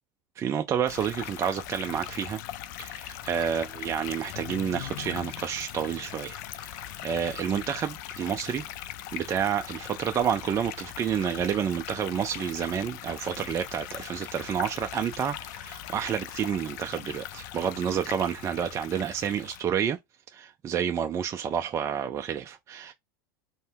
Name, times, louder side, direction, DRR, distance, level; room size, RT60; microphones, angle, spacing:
voice 1, 0.4-2.4 2.8-8.7 9.1-20.0 20.3-22.9, right 8 dB, 25° right, 0.4 m, -29 dB
sound 1, 0.9-19.6, left 12 dB, 65° left, 0.4 m, -40 dB
2.7 x 2.0 x 3.4 m
hypercardioid pair, 105°, 11 cm